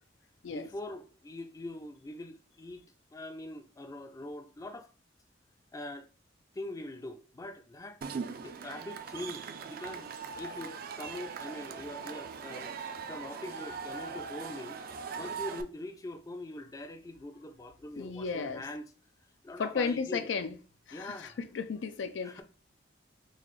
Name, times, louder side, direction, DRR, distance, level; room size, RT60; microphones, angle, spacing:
voice 1, 0.5-2.9 3.1-4.9 5.7-6.1 6.5-8.1 8.4-10.1 10.4-12.8 13.0-14.8 15.2-18.9 19.4-20.3 20.9-21.4 22.2-22.4, left 1 dB, 20° left, 0.4 m, -43 dB
Cheering / Crowd, 8.0-15.6, right 5 dB, 55° right, 0.4 m, -40 dB
voice 2, 18.0-18.6 19.6-20.6 20.9-22.4, left 5 dB, 85° left, 0.4 m, -34 dB
3.9 x 2.4 x 3.1 m
head